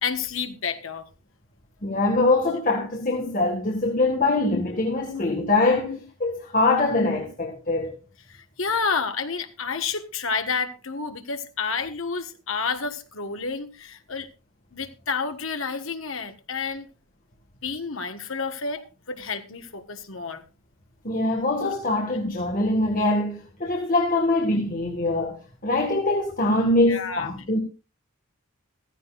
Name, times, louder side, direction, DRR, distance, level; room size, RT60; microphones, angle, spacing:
voice 1, 0.0-1.0 8.6-14.3 14.7-16.8 17.6-18.8 19.1-20.4 26.8-27.3, left 5 dB, 70° left, 1.5 m, -29 dB
voice 2, 1.8-8.0 21.0-27.6, left 2 dB, 40° left, 1.8 m, -23 dB
15.0 x 15.0 x 2.5 m
head